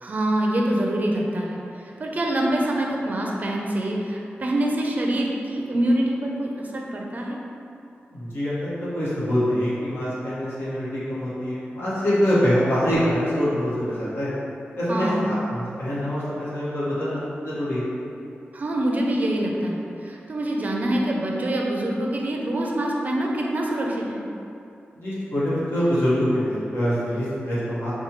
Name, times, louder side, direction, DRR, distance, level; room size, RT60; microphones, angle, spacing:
voice 1, 0.0-7.4 14.9-15.3 18.5-24.2, right 1 dB, 40° right, -1 dB, 0.4 m, -25 dB
voice 2, 8.1-14.3 14.8-17.9 25.0-27.9, equal, 70° left, -10 dB, 1.3 m, -24 dB
5.5 x 2.3 x 3.0 m, 2.7 s
wide cardioid pair, 150°, 4 cm